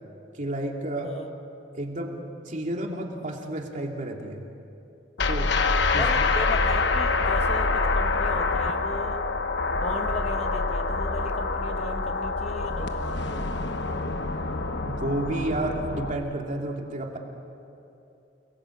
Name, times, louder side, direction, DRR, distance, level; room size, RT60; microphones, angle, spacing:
voice 1, 0.3-1.1 1.7-2.2 2.5-4.4 5.3-5.5 5.9-6.1 14.5-17.2, right 1 dB, 45° right, 1 dB, 2.8 m, -31 dB
sound 1, 5.2-16.1, left 3 dB, 65° left, 1.2 m, -26 dB
voice 2, 5.9-9.2 9.7-13.4, left 2 dB, 35° left, 5 dB, 1.4 m, -36 dB
29.0 x 20.0 x 8.4 m, 2.8 s
head